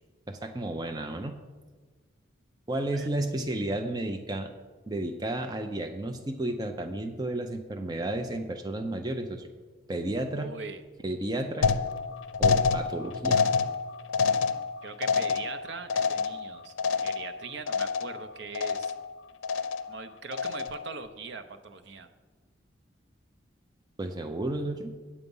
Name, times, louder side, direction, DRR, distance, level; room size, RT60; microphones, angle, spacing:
voice 1, 0.3-1.4 2.7-4.5 4.9-9.5 9.9-10.5 11.0-11.7 12.4-13.5 24.0-24.9, right 1 dB, 20° right, 5 dB, 0.5 m, -32 dB
voice 2, 10.4-10.8 14.8-16.7 17.0-18.9 19.9-22.1, right 4 dB, 65° right, 9 dB, 0.7 m, -41 dB
sound 1, 11.6-17.4 17.7-18.2 18.5-19.1 19.4-20.0 20.3-20.9, left 5 dB, 85° left, 0.5 m, -27 dB
8.5 x 7.9 x 5.4 m, 1.4 s
head